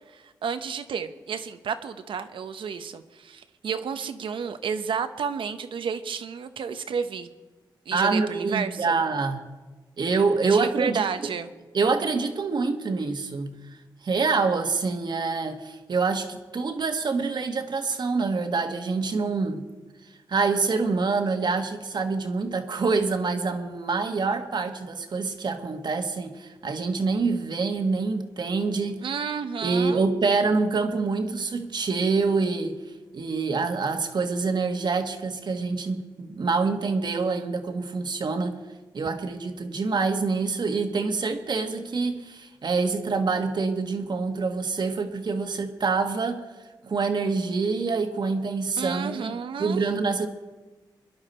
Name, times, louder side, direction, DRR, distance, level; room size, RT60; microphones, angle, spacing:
voice 1, 0.1-7.3 7.9-8.9 10.5-11.5 29.0-30.0 48.8-49.9, right 6 dB, 80° right, 10 dB, 0.9 m, -31 dB
voice 2, 7.9-9.4 10.0-11.0 11.7-13.5 14.0-19.6 20.3-29.0 29.6-32.7 33.1-38.6 38.9-46.4 46.8-49.3 49.6-50.3, right 4 dB, 60° right, 6 dB, 1.5 m, -26 dB
22.5 x 10.5 x 4.4 m, 1.2 s
cardioid pair, 65°, 9 cm